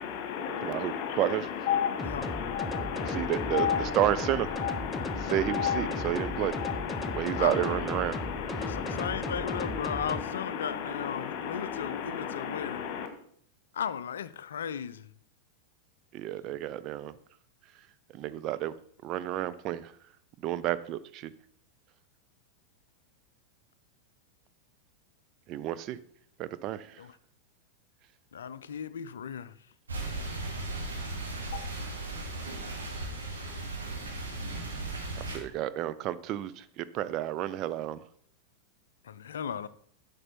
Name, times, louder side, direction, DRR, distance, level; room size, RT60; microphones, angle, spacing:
voice 1, 0.0-13.1 31.5-31.6, left 8 dB, 45° left, 1.7 m, -34 dB
voice 2, 0.6-1.4 3.1-3.7 3.9-4.5 5.3-6.5 7.1-8.1 16.1-17.1 18.2-18.7 19.0-19.9 20.4-21.3 25.5-26.0 26.4-26.9 35.3-38.0, right 13 dB, 35° right, 0.6 m, -30 dB
sound 1, 2.0-10.2, left 1 dB, 5° left, 0.8 m, -37 dB
voice 3, 7.3-7.7 8.6-12.8 13.7-15.1 27.0-27.2 28.3-29.5 39.0-39.7, left 8 dB, 65° left, 0.5 m, -36 dB
sound 2, 29.9-35.4, right 2 dB, 75° right, 2.3 m, -36 dB
11.0 x 6.8 x 4.4 m
figure-of-eight pair, 90°, 0 cm